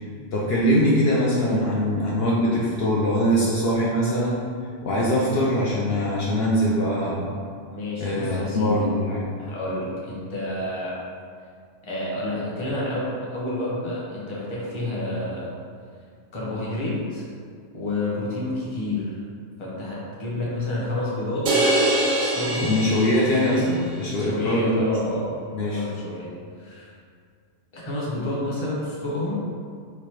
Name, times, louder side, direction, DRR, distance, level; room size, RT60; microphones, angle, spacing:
voice 1, 0.3-4.4 4.8-7.3 8.0-9.3 22.6-24.9 25.5-25.8, equal, 65° left, -5 dB, 0.7 m, -22 dB
voice 2, 7.7-8.9 9.4-10.9 11.8-15.5 16.3-17.3 17.7-19.2 19.6-21.5 22.2-22.8 24.1-25.3 25.6-26.3 26.6-26.9 27.7-29.3, left 1 dB, 30° left, -6 dB, 0.8 m, -29 dB
sound 1, 21.5-23.8, right 1 dB, 60° right, 0.6 m, -23 dB
3.2 x 2.5 x 4.4 m, 2.1 s
omnidirectional pair, 1.2 m